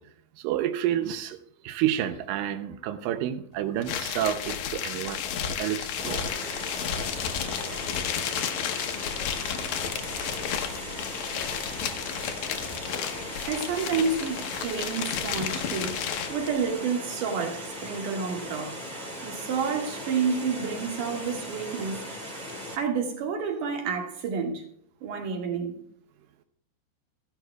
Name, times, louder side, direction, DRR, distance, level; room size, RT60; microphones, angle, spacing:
voice 1, 0.4-1.4 1.6-5.2 5.6-6.2, right 11 dB, 80° right, 2.1 m, -29 dB
sound 1, 3.8-16.5, left 8 dB, 80° left, 1.7 m, -32 dB
Water, 6.0-22.8, equal, 10° right, 3.2 m, -38 dB
voice 2, 13.5-18.8 19.2-22.0 22.8-24.6 25.0-25.8, right 5 dB, 60° right, 3.1 m, -29 dB
14.5 x 11.5 x 2.3 m
omnidirectional pair, 4.6 m